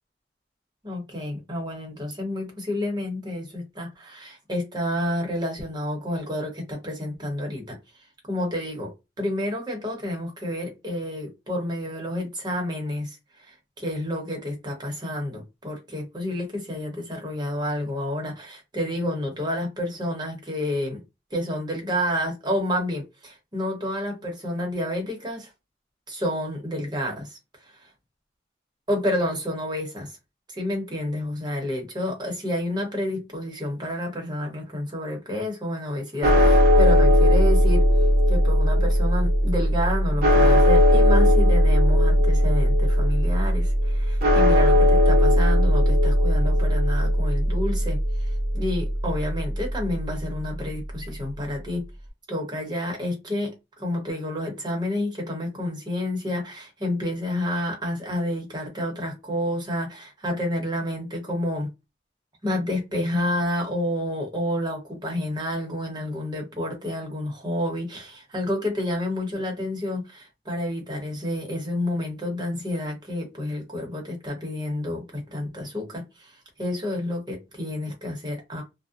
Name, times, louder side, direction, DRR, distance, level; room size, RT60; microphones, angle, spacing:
voice 1, 0.8-7.8 8.3-8.9 9.2-21.0 21.3-25.5 26.1-27.9 28.9-30.2 30.5-37.8 38.3-51.8 52.3-53.5 53.8-61.7 62.4-78.6, left 1 dB, 25° right, 0.9 m, -29 dB
sound 1, 36.2-50.5, equal, 50° right, 0.8 m, -19 dB
2.6 x 2.1 x 2.4 m
head